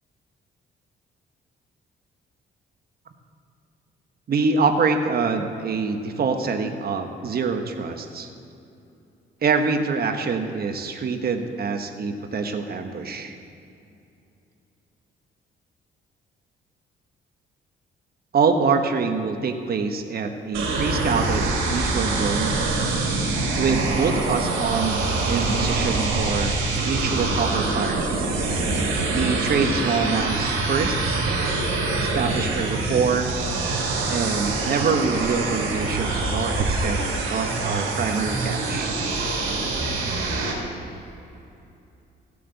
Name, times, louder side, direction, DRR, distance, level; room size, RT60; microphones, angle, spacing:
voice 1, 4.3-8.3 9.4-13.4 18.3-22.5 23.6-28.1 29.1-31.2 32.0-33.3 34.1-37.0 37.3-38.9, right 5 dB, 50° right, 6 dB, 1.1 m, -25 dB
sound 1, 20.5-40.5, right 3 dB, 90° right, 3.1 m, -25 dB
16.0 x 8.4 x 4.1 m, 2.7 s
cardioid pair, 90°, 20 cm